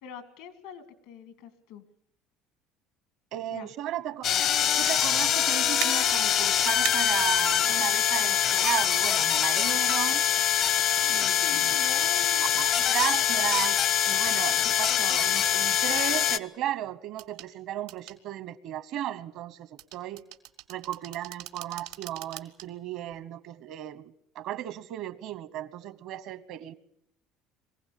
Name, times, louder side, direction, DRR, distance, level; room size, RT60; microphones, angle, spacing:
voice 1, 0.0-1.8 3.5-3.7 11.0-12.7, left 7 dB, 85° left, 2.1 m, -44 dB
voice 2, 3.3-4.3 4.7-10.2 11.1-11.8 12.4-20.2 20.7-26.7, right 12 dB, 70° right, 1.1 m, -35 dB
sound 1, 4.2-16.4, left 10 dB, 60° left, 0.8 m, -24 dB
sound 2, 5.8-5.9 6.8-7.0 9.0-9.1 11.9-12.1 12.6-12.9 14.3-14.6 15.1-15.4 17.2-17.5 17.9-18.2 19.8-22.7 23.1-23.2, right 14 dB, 85° right, 1.4 m, -39 dB
22.5 x 16.0 x 8.5 m
supercardioid pair, 100°, 0 cm